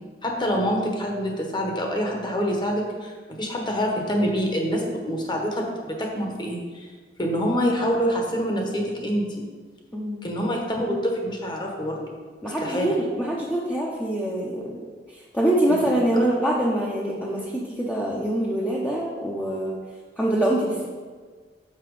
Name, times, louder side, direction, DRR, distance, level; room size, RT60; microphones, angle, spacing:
voice 1, 0.2-6.9 7.2-9.3 10.2-12.1 12.4-12.9 16.1-16.2, equal, 25° left, 0 dB, 1.2 m, -26 dB
voice 2, 9.9-10.2 12.4-14.8 15.1-19.7 20.2-20.9, right 1 dB, 10° left, -4 dB, 0.7 m, -24 dB
5.9 x 5.8 x 4.9 m, 1.5 s
head